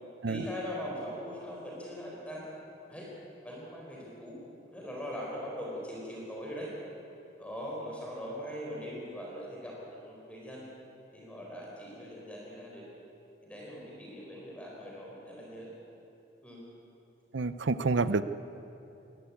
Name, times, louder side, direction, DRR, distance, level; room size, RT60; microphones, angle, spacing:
voice 1, 0.2-2.4 2.9-3.1 3.4-4.4 4.7-6.7 7.4-9.8 10.0-10.6 11.1-12.8 13.4-15.7 16.4-16.6, equal, 5° left, -3 dB, 4.3 m, -41 dB
voice 2, 17.3-18.2, right 3 dB, 75° right, 13 dB, 0.6 m, -28 dB
20.5 x 20.0 x 8.7 m, 2.9 s
head